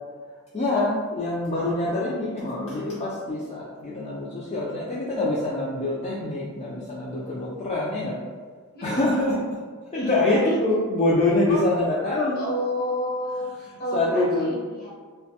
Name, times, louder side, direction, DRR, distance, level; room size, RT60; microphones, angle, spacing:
voice 1, 0.5-8.2 8.8-9.4 9.9-12.4 13.9-14.6, left 2 dB, 30° left, -6 dB, 0.4 m, -25 dB
voice 2, 8.7-9.2 9.9-10.5 11.5-11.6 12.4-14.9, equal, 45° left, -4 dB, 0.8 m, -30 dB
2.8 x 2.2 x 2.7 m, 1.5 s
head